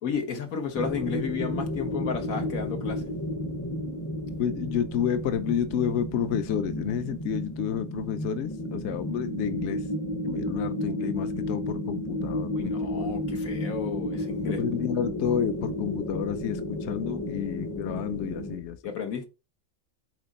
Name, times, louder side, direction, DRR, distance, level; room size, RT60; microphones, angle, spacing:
voice 1, 0.0-3.0 12.5-14.6 18.8-19.3, left 6 dB, 80° left, 1.6 m, -33 dB
No Longer, 0.7-18.6, left 1 dB, 20° left, 0.5 m, -32 dB
voice 2, 4.4-9.8 10.2-13.2 14.4-18.8, left 9 dB, 60° left, 0.9 m, -30 dB
7.8 x 3.9 x 4.1 m
omnidirectional pair, 1.4 m